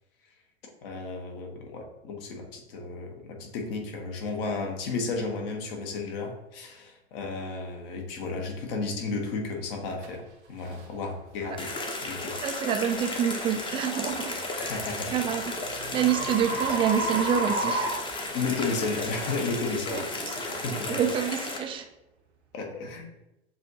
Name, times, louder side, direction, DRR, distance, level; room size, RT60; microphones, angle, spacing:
voice 1, 0.8-11.7 12.0-12.3 14.5-15.1 16.5-16.6 18.3-21.0 22.5-23.1, left 3 dB, 55° left, 2 dB, 1.2 m, -33 dB
sound 1, 10.0-10.1 10.7-10.9 11.5-11.7 14.3-18.8, right 2 dB, 80° right, 1.1 m, -32 dB
sound 2, 11.6-21.6, left 2 dB, 15° left, 0.8 m, -34 dB
voice 2, 12.4-14.3 15.1-15.5 15.9-17.9 19.9-20.3 20.7-21.9, right 8 dB, 15° right, 7 dB, 0.3 m, -27 dB
7.0 x 2.7 x 2.7 m, 0.91 s
hypercardioid pair, 95°, 33 cm